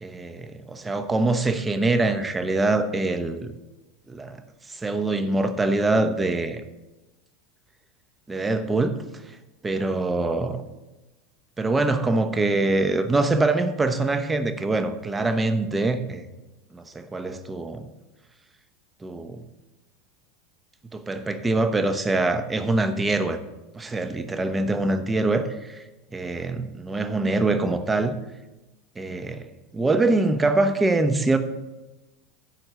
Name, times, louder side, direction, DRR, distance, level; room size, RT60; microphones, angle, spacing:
voice 1, 0.0-3.5 4.1-4.4 4.7-6.6 8.3-9.0 9.6-10.7 11.6-16.3 16.7-17.9 19.0-19.4 20.9-23.4 23.7-25.8 26.1-28.2 29.0-29.5 29.7-31.4, right 2 dB, 15° right, 8 dB, 0.9 m, -24 dB
11.0 x 4.5 x 6.6 m, 1.1 s
hypercardioid pair, 105°, 0 cm